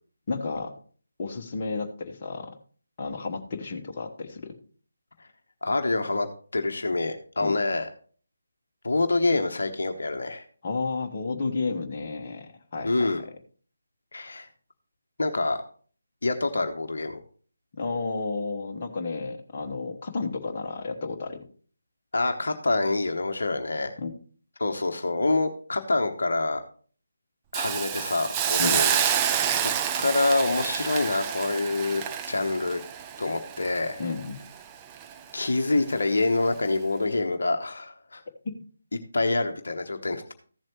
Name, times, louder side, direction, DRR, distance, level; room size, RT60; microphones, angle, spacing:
voice 1, 0.3-0.7 1.2-2.5 3.0-4.5 7.4-7.6 10.6-13.3 17.8-21.5 24.0-24.1 28.6-28.8 34.0-34.4 38.4-38.5, left 4 dB, 30° left, 1 dB, 1.2 m, -32 dB
voice 2, 5.6-6.3 6.5-7.9 8.8-10.4 12.8-13.2 14.1-14.5 15.2-15.6 16.2-17.2 22.1-23.9 24.6-26.6 27.5-29.0 30.0-32.8 33.2-34.0 35.3-38.2 39.1-40.3, left 2 dB, 55° left, 6 dB, 1.0 m, -26 dB
Hiss, 27.5-34.6 35.0-35.1, right 9 dB, 15° right, 0.5 m, -28 dB
14.5 x 7.5 x 3.1 m, 0.43 s
figure-of-eight pair, 150°, 0 cm